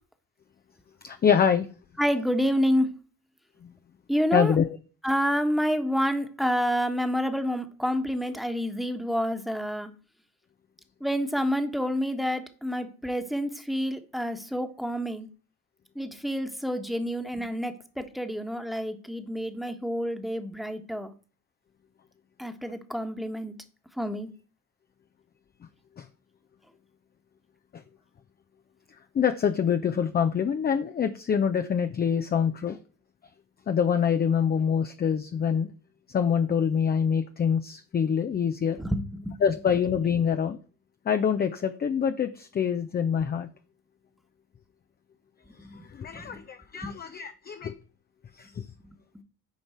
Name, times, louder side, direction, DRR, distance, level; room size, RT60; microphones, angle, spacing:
voice 1, 1.0-1.7 4.3-4.8 26.0-26.1 27.7-27.8 29.1-32.8 33.7-35.7 36.1-38.8 39.4-40.6 41.1-43.5 45.9-47.7 48.4-48.6, left 7 dB, 20° left, 0.6 m, -25 dB
voice 2, 2.0-2.9 4.1-4.6 5.0-9.9 11.0-15.3 15.9-21.1 22.4-23.5 24.0-24.3 38.8-39.4 45.6-45.8 46.1-46.4 46.8-46.9, equal, ahead, 1.4 m, -28 dB
9.4 x 5.3 x 4.6 m
figure-of-eight pair, 55°, 45 cm